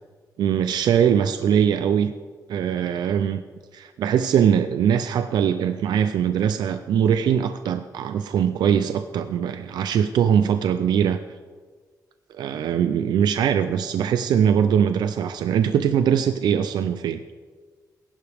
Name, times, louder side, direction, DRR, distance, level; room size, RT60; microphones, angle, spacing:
voice 1, 0.4-2.1 2.5-3.4 3.7-11.2 12.3-17.2, right 8 dB, 90° right, 9 dB, 0.5 m, -21 dB
20.0 x 11.0 x 3.5 m, 1.5 s
wide cardioid pair, 140°, 7 cm